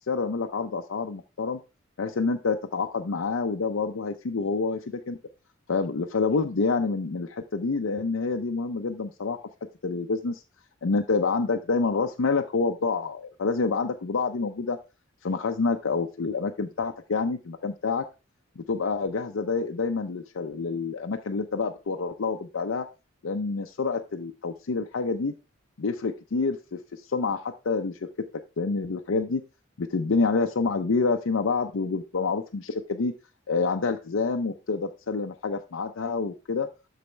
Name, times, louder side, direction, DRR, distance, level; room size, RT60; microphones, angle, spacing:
voice 1, 0.1-1.6 2.0-5.2 5.7-9.4 9.8-10.4 10.8-14.8 15.2-18.0 18.6-22.9 23.2-25.3 25.8-28.0 28.6-29.4 29.8-33.1 33.5-36.7, left 4 dB, 80° left, 5 dB, 0.6 m, -27 dB
12.5 x 4.2 x 3.3 m, 0.29 s
head